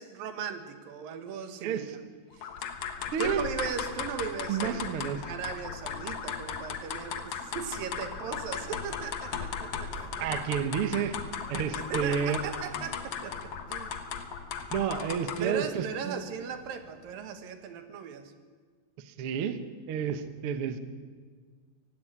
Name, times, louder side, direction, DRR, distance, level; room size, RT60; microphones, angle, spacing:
voice 1, 0.0-1.9 2.3-2.5 3.2-4.8 5.2-10.3 11.7-13.4 13.7-13.9 15.4-18.3, right 7 dB, 70° right, 9 dB, 3.1 m, -38 dB
voice 2, 1.6-2.0 3.1-3.5 4.5-5.3 10.2-11.2 11.5-12.5 14.7-16.2 19.0-19.6 19.9-20.8, right 7 dB, 85° right, 10 dB, 1.2 m, -30 dB
sound 1, 2.4-15.6, left 7 dB, 60° left, 1.8 m, -37 dB
sound 2, 5.5-17.3, right 4 dB, 50° right, 3.4 m, -57 dB
17.5 x 16.0 x 10.0 m, 1.5 s
omnidirectional pair, 4.5 m